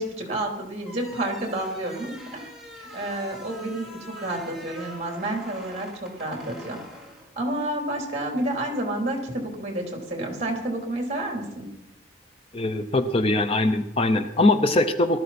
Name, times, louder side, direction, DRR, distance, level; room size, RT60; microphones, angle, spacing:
voice 1, 0.0-2.4 2.8-6.8 7.3-11.7, right 1 dB, 35° right, 1 dB, 3.4 m, -30 dB
sound 1, 0.8-7.8, equal, ahead, 2.4 m, -44 dB
voice 2, 12.5-15.2, left 2 dB, 30° left, 9 dB, 0.6 m, -22 dB
19.0 x 13.5 x 4.3 m, 0.88 s
head